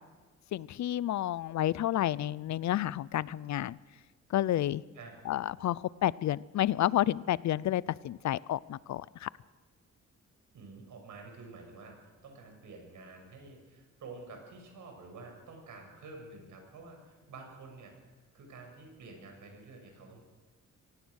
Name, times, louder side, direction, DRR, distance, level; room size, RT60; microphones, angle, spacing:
voice 1, 0.5-3.8 4.3-4.8 5.3-9.3, left 13 dB, 70° left, 21 dB, 0.6 m, -30 dB
voice 2, 10.5-20.2, right 3 dB, 85° right, 3 dB, 6.5 m, -49 dB
25.0 x 18.0 x 6.5 m, 1.3 s
wide cardioid pair, 135°, 30 cm